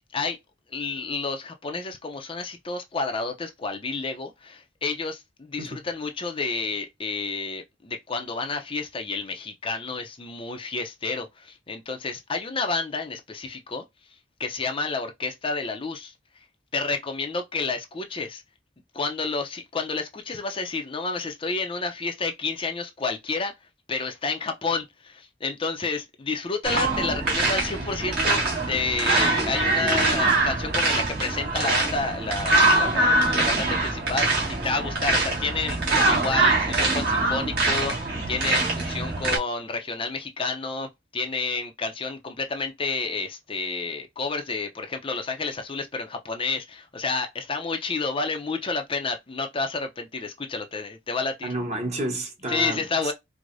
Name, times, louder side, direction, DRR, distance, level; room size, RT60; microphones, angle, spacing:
voice 1, 0.7-13.8 14.4-16.1 16.7-18.4 18.9-23.5 23.9-51.6 52.5-53.1, left 4 dB, 30° left, 0.5 m, -30 dB
sound 1, 26.6-39.4, right 2 dB, 60° right, 1.5 m, -23 dB
voice 2, 51.4-53.1, right 1 dB, 40° right, 1.0 m, -30 dB
4.7 x 2.1 x 2.5 m
head